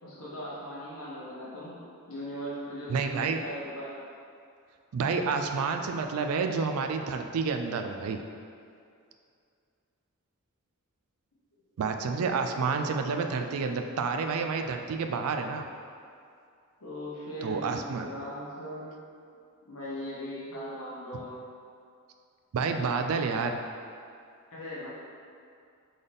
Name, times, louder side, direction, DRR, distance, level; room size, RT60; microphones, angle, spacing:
voice 1, 0.0-3.9 12.2-12.5 16.8-17.7 18.0-19.0 19.7-21.4 24.5-24.9, equal, 75° left, -9 dB, 1.1 m, -39 dB
voice 2, 2.9-3.4 4.9-8.2 11.8-15.6 17.4-18.1 21.1-21.2 22.5-23.6, right 5 dB, 70° right, 6 dB, 0.3 m, -29 dB
3.9 x 3.9 x 3.4 m, 2.4 s
head